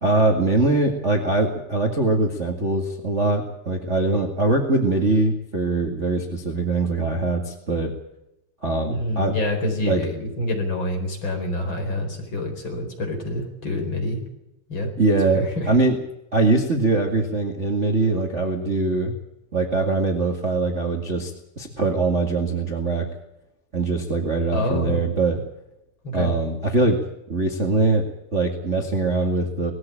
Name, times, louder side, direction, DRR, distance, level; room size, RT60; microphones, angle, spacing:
voice 1, 0.0-7.9 8.6-9.4 9.8-10.0 15.0-16.0 16.3-19.1 19.5-23.1 23.7-25.4 26.1-28.0 28.3-29.7, right 3 dB, 45° right, 2 dB, 0.9 m, -22 dB
voice 2, 8.9-14.2 14.7-14.9 15.3-15.7 24.5-25.0 26.0-26.3, left 1 dB, 25° left, 3 dB, 4.8 m, -27 dB
20.0 x 16.0 x 8.8 m, 0.90 s
omnidirectional pair, 5.1 m